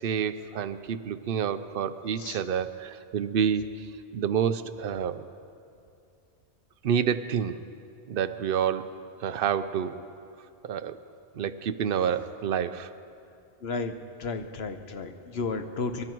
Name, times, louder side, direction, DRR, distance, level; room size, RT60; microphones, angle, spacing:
voice 1, 0.0-3.9 4.1-5.2 6.8-7.6 8.1-10.0 10.6-11.0 11.4-12.9, right 8 dB, 60° right, 11 dB, 0.7 m, -28 dB
voice 2, 13.6-13.9 14.2-16.0, left 4 dB, 65° left, 8 dB, 1.1 m, -33 dB
24.5 x 12.0 x 4.5 m, 2.5 s
omnidirectional pair, 1.2 m